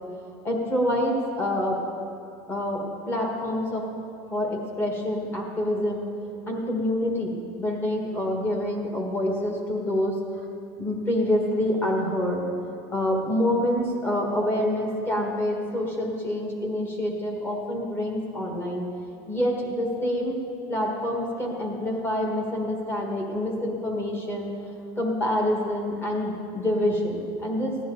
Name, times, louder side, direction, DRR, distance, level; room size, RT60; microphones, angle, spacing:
voice 1, 0.4-1.8 2.5-3.9 4.3-6.1 6.5-10.2 10.8-12.4 12.9-18.8 19.3-20.4 20.7-24.5 25.0-27.8, left 1 dB, 20° left, 0 dB, 1.5 m, -27 dB
15.5 x 9.9 x 3.9 m, 2.5 s
cardioid pair, 165°, 12 cm